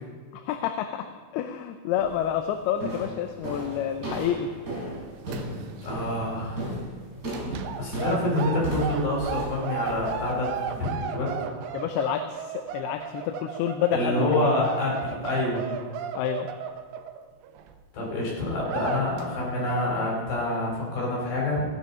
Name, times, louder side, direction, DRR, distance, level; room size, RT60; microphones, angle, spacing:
voice 1, 0.3-1.1 1.3-4.5 11.7-14.7 16.2-16.5, left 10 dB, 85° left, 7 dB, 2.6 m, -29 dB
sound 1, 2.0-2.3 2.8-10.8, right 1 dB, 20° right, 4.6 m, -35 dB
sound 2, 4.9-5.9 6.2-6.4 7.3-17.7 18.2-18.3 18.6-19.3 19.6-20.0, right 7 dB, 80° right, 2.7 m, -35 dB
voice 2, 5.8-6.7 7.8-11.3 13.9-15.6 17.9-21.6, left 1 dB, 60° left, -4 dB, 6.2 m, -27 dB
15.5 x 11.5 x 5.7 m, 1.5 s
omnidirectional pair, 4.5 m